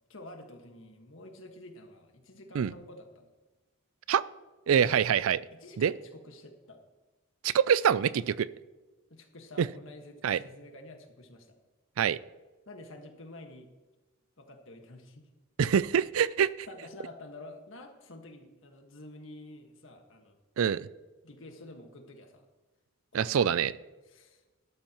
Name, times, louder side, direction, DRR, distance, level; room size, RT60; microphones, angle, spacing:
voice 1, 0.1-3.3 4.8-5.1 5.5-6.8 9.1-11.5 12.7-13.7 14.4-15.3 16.7-20.4 21.2-22.4 23.1-23.6 24.1-24.4, left 1 dB, 70° left, 4 dB, 1.6 m, -49 dB
voice 2, 4.7-5.4 5.8-5.9 7.4-8.5 9.6-9.7 10.2-10.4 12.0-12.2 15.6-16.7 20.6-20.9 23.1-23.7, right 8 dB, 80° right, 19 dB, 0.4 m, -25 dB
14.0 x 12.0 x 3.0 m, 1.2 s
head